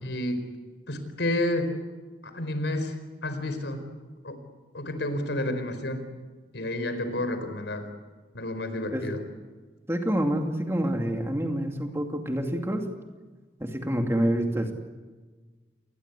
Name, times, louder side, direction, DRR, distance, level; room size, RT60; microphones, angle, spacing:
voice 1, 0.0-0.5 0.9-1.7 2.2-3.8 4.2-4.4 4.7-6.1 6.5-7.8 8.3-9.2, left 1 dB, 80° left, 9 dB, 4.6 m, -30 dB
voice 2, 9.9-12.9 13.6-14.7, right 1 dB, 15° right, 3 dB, 2.5 m, -27 dB
28.5 x 21.5 x 8.4 m, 1.3 s
head